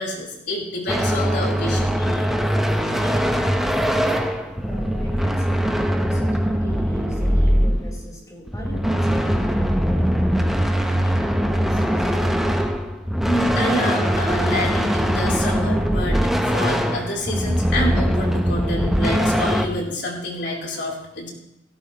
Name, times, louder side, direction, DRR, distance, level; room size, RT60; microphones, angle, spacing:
voice 1, 0.0-2.3 3.0-3.1 4.3-4.4 13.2-21.3, left 1 dB, 65° left, -2 dB, 4.2 m, -28 dB
sound 1, 0.9-8.1 8.5-19.7, equal, ahead, 1.1 m, -21 dB
voice 2, 4.6-12.1 20.0-20.1, left 1 dB, 20° left, -3 dB, 5.4 m, -40 dB
17.5 x 17.0 x 3.3 m, 0.86 s
head